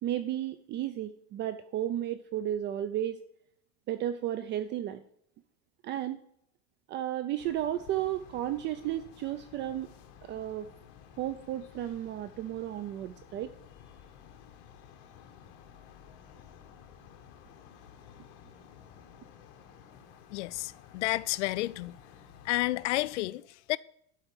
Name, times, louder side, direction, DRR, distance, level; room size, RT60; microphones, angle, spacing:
voice 1, 0.0-3.2 3.9-5.0 5.8-6.2 6.9-9.9 10.2-10.7 11.2-13.5, right 12 dB, 30° right, 0.5 m, -33 dB
sound 1, 7.4-23.2, left 8 dB, 55° left, 1.8 m, -54 dB
voice 2, 20.3-22.0 22.4-23.8, left 18 dB, 75° left, 0.6 m, -31 dB
12.5 x 4.4 x 7.6 m
supercardioid pair, 145°, 35 cm